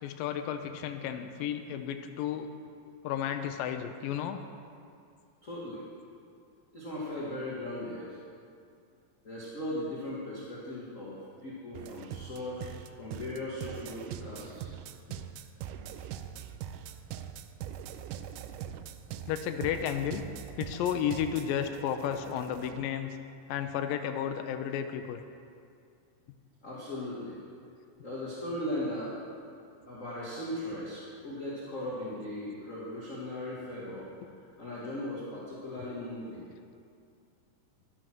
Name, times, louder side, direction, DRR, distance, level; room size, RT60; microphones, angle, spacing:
voice 1, 0.0-2.5 3.0-4.4 19.3-20.3 20.6-23.2 23.5-25.2, left 9 dB, 85° left, 7 dB, 2.4 m, -32 dB
voice 2, 5.4-5.8 6.7-8.2 9.2-14.7 26.6-27.4 28.0-29.1 29.9-34.1 34.6-36.5, left 1 dB, 30° left, -7 dB, 1.6 m, -38 dB
sound 1, 11.7-22.9, right 10 dB, 80° right, 2.0 m, -42 dB
12.0 x 10.5 x 6.2 m, 2.4 s
omnidirectional pair, 4.1 m